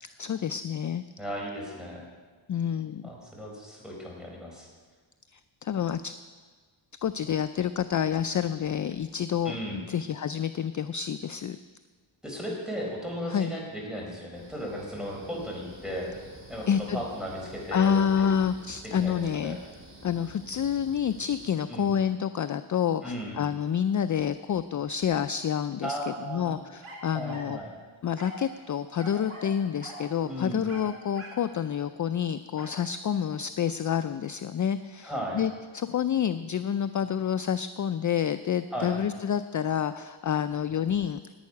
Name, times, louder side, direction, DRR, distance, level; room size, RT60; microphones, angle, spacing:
voice 1, 0.0-1.0 2.5-3.0 5.3-6.2 7.0-11.6 13.3-13.5 16.7-17.0 17.7-19.6 20.0-26.0 26.3-27.6 28.0-41.2, left 8 dB, 40° left, 12 dB, 0.4 m, -28 dB
voice 2, 1.2-2.1 3.0-4.7 9.4-9.8 12.2-16.1 16.5-18.3 19.0-19.6 21.7-21.9 23.0-23.4 25.8-26.6 27.1-27.7 30.2-30.7 35.0-35.4 38.7-39.0, equal, ahead, -3 dB, 4.5 m, -36 dB
sound 1, 14.3-21.5, right 1 dB, 25° right, 3.2 m, -49 dB
sound 2, 26.8-27.6 28.2-28.5 29.0-29.6 29.8-30.1 30.7-31.5 32.6-32.8, right 1 dB, 80° right, 4.8 m, -43 dB
11.5 x 9.2 x 9.7 m, 1.5 s
wide cardioid pair, 110°, 48 cm